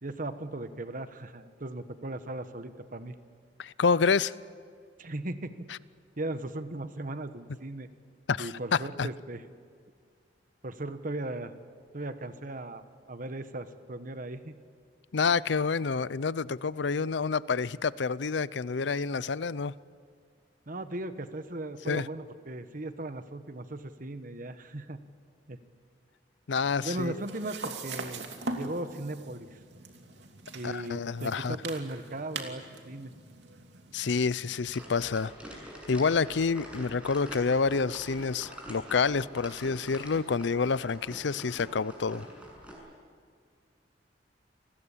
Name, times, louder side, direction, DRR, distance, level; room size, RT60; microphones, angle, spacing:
voice 1, 0.0-3.2 5.0-5.7 6.2-7.9 8.4-9.4 10.6-11.5 11.9-14.6 20.7-25.0 25.5-25.6 26.8-28.2 28.6-29.6 30.5-33.1, right 2 dB, 50° right, 1.3 m, -37 dB
voice 2, 3.6-4.3 8.3-8.5 9.0-9.1 15.1-19.7 21.9-22.1 26.5-27.1 30.6-31.6 33.9-35.3 35.9-42.3, left 5 dB, 80° left, 0.6 m, -28 dB
sound 1, 26.6-34.8, right 3 dB, 75° right, 2.9 m, -42 dB
sound 2, 34.6-42.7, equal, 5° right, 7.0 m, -46 dB
29.5 x 20.5 x 8.6 m
head